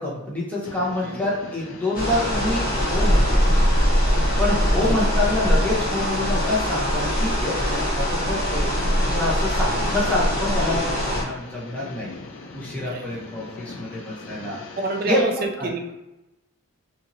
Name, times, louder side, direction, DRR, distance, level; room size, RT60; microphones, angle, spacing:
voice 1, 0.0-3.4 4.4-8.7 9.1-12.1 12.5-14.6 15.1-15.7, left 2 dB, 5° left, -6 dB, 0.6 m, -27 dB
sound 1, 0.6-15.2, left 3 dB, 60° left, 0.4 m, -41 dB
sound 2, 1.9-11.2, equal, 40° left, 0.9 m, -22 dB
voice 2, 12.8-13.2 14.8-15.9, right 3 dB, 45° right, 3 dB, 0.4 m, -29 dB
2.8 x 2.7 x 2.6 m, 0.94 s
head